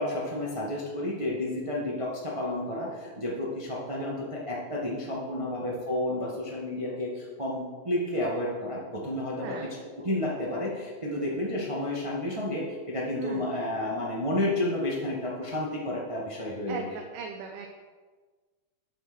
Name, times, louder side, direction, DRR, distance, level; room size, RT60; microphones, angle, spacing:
voice 1, 0.0-16.8, left 1 dB, 40° right, -4 dB, 0.4 m, -31 dB
voice 2, 9.3-9.7 13.2-13.4 16.7-17.7, right 6 dB, 85° right, 2 dB, 2.4 m, -38 dB
9.4 x 6.1 x 6.3 m, 1.4 s
omnidirectional pair, 3.8 m